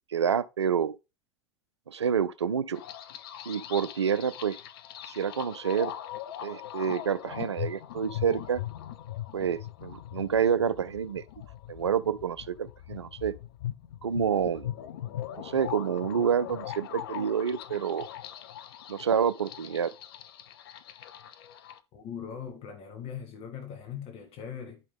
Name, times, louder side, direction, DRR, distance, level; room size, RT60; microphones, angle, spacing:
voice 1, 0.1-1.0 1.9-2.8 3.5-4.6 5.0-5.9 6.4-8.6 9.3-11.2 11.7-13.3 14.0-14.7 15.4-18.1 18.9-19.9, right 7 dB, 75° right, 0.5 m, -28 dB
sound 1, 2.7-21.8, left 12 dB, 60° left, 0.7 m, -40 dB
voice 2, 21.9-24.8, left 8 dB, 40° left, 1.5 m, -40 dB
10.5 x 5.2 x 3.6 m
figure-of-eight pair, 80°, 14 cm